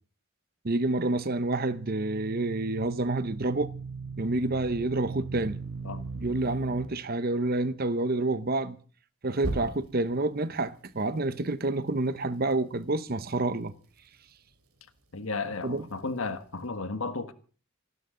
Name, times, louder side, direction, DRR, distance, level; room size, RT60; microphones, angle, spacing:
voice 1, 0.6-3.7 4.2-5.6 6.2-8.8 9.2-13.7 15.6-15.8, right 2 dB, 45° right, 0.8 m, -28 dB
sound 1, 1.1-6.9 9.4-10.1, right 3 dB, 85° right, 3.0 m, -38 dB
voice 2, 15.1-17.3, left 3 dB, 70° left, 1.5 m, -33 dB
27.5 x 12.5 x 3.8 m
head